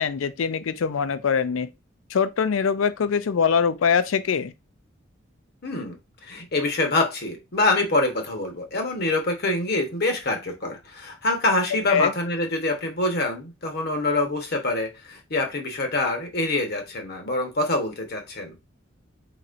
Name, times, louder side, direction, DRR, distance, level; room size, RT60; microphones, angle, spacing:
voice 1, 0.0-1.7 2.1-4.5 11.9-12.1, left 6 dB, 90° left, 0.4 m, -23 dB
voice 2, 5.6-6.0 6.2-18.5, left 2 dB, 55° left, 1.1 m, -25 dB
4.2 x 4.1 x 2.5 m
head